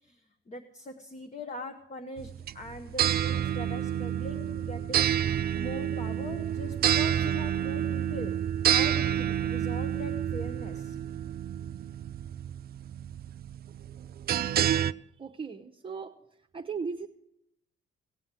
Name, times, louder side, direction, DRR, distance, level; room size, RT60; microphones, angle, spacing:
voice 1, 0.0-5.2 5.5-8.3 8.6-11.0, left 2 dB, 35° left, 6 dB, 1.3 m, -42 dB
sound 1, 2.2-14.9, right 10 dB, 50° right, 0.4 m, -29 dB
voice 2, 15.2-16.1 16.5-17.1, right 5 dB, 25° right, 2 dB, 0.9 m, -36 dB
17.5 x 8.0 x 7.6 m, 0.78 s
cardioid pair, 90°, 20 cm